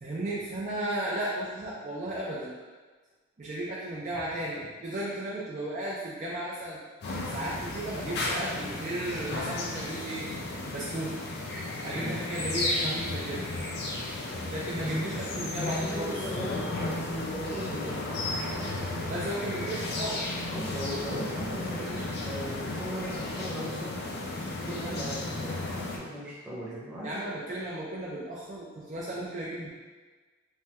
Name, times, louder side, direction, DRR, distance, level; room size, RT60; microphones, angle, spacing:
voice 1, 0.0-2.5 3.4-6.8 7.3-10.3 10.7-11.2 11.8-13.5 14.5-16.1 19.1-20.2 27.0-29.7, right 1 dB, 35° right, -7 dB, 0.4 m, -34 dB
sound 1, 7.0-26.0, left 2 dB, 50° left, 0.4 m, -34 dB
voice 2, 14.8-18.1 19.5-19.7 20.5-24.0 24.6-27.1, equal, 5° right, -9 dB, 0.8 m, -38 dB
3.3 x 2.2 x 2.8 m, 1.4 s
head